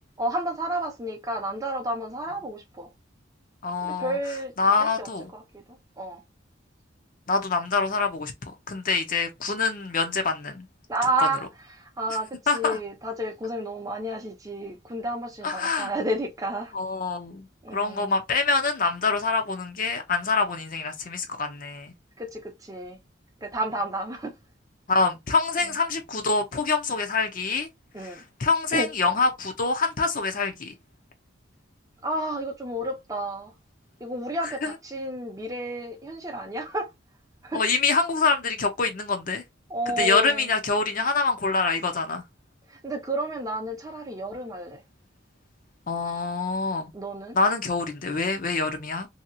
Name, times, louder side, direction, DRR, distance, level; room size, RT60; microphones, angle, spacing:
voice 1, 0.2-2.9 3.8-5.1 5.3-5.4 6.0-6.2 10.9-11.5 11.8-16.7 17.6-18.1 22.2-23.0 23.4-24.3 27.9-28.2 28.7-28.9 32.0-33.5 34.0-36.9 37.4-37.6 39.7-40.5 42.8-44.8 46.9-47.4, right 1 dB, 20° right, 0.6 m, -31 dB
voice 2, 3.6-4.2 4.6-5.3 7.3-10.7 11.2-11.3 12.5-12.8 15.4-15.9 16.7-17.5 17.7-21.9 24.9-27.7 28.0-30.7 34.4-34.7 37.5-39.4 39.9-42.2 45.9-46.9 47.3-49.1, left 4 dB, 45° left, 0.6 m, -25 dB
2.8 x 2.8 x 2.6 m
head